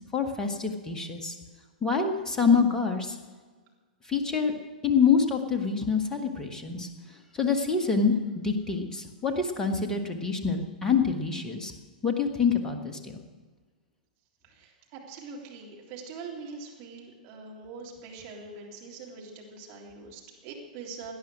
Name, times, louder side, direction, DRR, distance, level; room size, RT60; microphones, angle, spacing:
voice 1, 0.1-1.3 1.8-3.1 4.1-4.5 4.8-6.9 7.4-8.1 8.4-11.7 12.0-13.1, left 5 dB, 15° left, 5 dB, 1.7 m, -26 dB
voice 2, 14.4-21.1, right 4 dB, 40° right, -1 dB, 3.4 m, -43 dB
17.5 x 10.5 x 6.4 m, 1.4 s
figure-of-eight pair, 105°, 5 cm